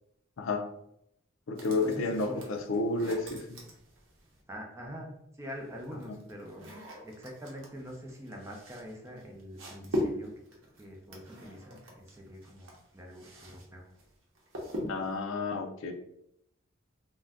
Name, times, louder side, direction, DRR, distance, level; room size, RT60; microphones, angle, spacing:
voice 1, 0.4-0.7 1.5-3.5 14.8-15.9, left 3 dB, 80° left, 3 dB, 0.5 m, -31 dB
voice 2, 1.6-2.5 4.5-6.7 7.0-10.3 10.8-13.8, equal, 15° right, 0 dB, 0.5 m, -44 dB
sound 1, 1.6-4.4 5.4-13.7 13.9-15.2, equal, 75° right, 0.8 m, -41 dB
2.5 x 2.2 x 3.4 m, 0.77 s
head